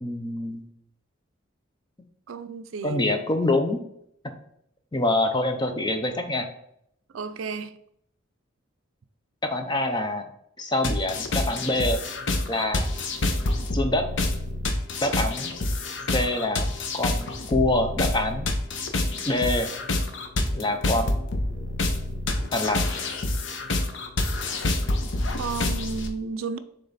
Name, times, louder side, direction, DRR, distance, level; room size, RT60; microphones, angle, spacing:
voice 1, 0.0-0.6 2.8-3.8 4.2-4.3 4.9-6.5 9.4-10.2 10.6-12.0 12.5-12.9 13.7-14.1 15.0-15.5 16.1-16.7 16.9-18.5 19.3-19.7 20.5-21.2 22.5-22.9, left 2 dB, 20° left, 0.6 m, -25 dB
voice 2, 2.3-3.1 7.1-7.8 25.3-26.6, right 4 dB, 80° right, 0.4 m, -32 dB
sound 1, 10.8-26.1, left 2 dB, 65° left, 0.8 m, -27 dB
6.9 x 3.4 x 4.1 m
head